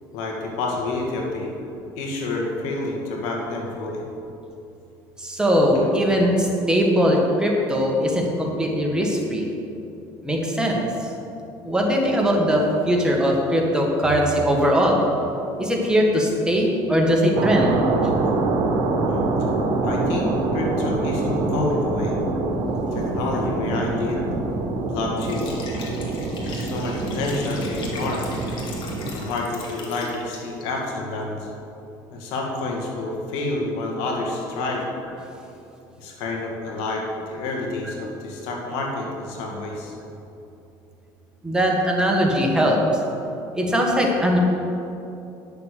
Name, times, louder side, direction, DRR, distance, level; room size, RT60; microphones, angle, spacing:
voice 1, 0.1-1.5 2.0-4.0 19.1-19.3 19.8-22.2 22.9-24.2 24.9-25.6 26.5-28.2 29.1-31.5 32.1-34.8 36.0-40.0, left 2 dB, 80° left, 0 dB, 2.1 m, -28 dB
voice 2, 5.2-9.5 10.2-11.1 11.6-15.0 15.6-17.9 27.0-27.1 37.8-37.9 41.4-42.8 43.6-44.4, equal, 10° right, -1 dB, 1.8 m, -20 dB
sound 1, 17.4-29.2, right 3 dB, 60° right, 1.5 m, -25 dB
Liquid, 25.1-30.6, left 3 dB, 55° left, 2.3 m, -39 dB
10.5 x 6.9 x 6.7 m, 2.8 s
cardioid pair, 110°, 10 cm